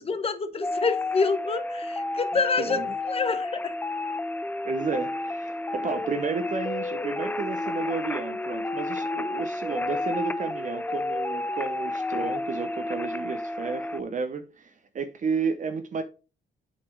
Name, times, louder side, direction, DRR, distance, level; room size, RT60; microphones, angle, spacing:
voice 1, 0.0-3.7, left 4 dB, 30° left, 1.0 m, -27 dB
sound 1, 0.6-14.0, left 2 dB, 10° left, 0.3 m, -31 dB
voice 2, 2.6-2.9 4.6-16.0, right 5 dB, 40° right, 0.8 m, -32 dB
7.6 x 4.2 x 4.8 m
cardioid pair, 90°, 20 cm